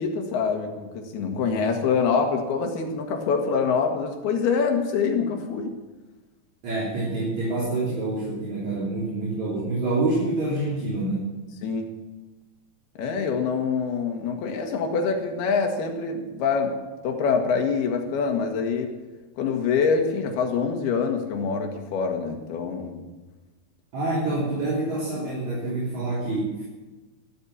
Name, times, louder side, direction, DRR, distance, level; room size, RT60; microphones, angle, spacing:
voice 1, 0.0-5.8 11.6-12.0 13.0-19.0 19.4-23.0, left 5 dB, 90° left, 4 dB, 3.8 m, -25 dB
voice 2, 6.6-11.4 23.9-26.6, right 2 dB, 50° right, -6 dB, 4.8 m, -27 dB
14.5 x 13.0 x 7.3 m, 1.2 s
omnidirectional pair, 4.4 m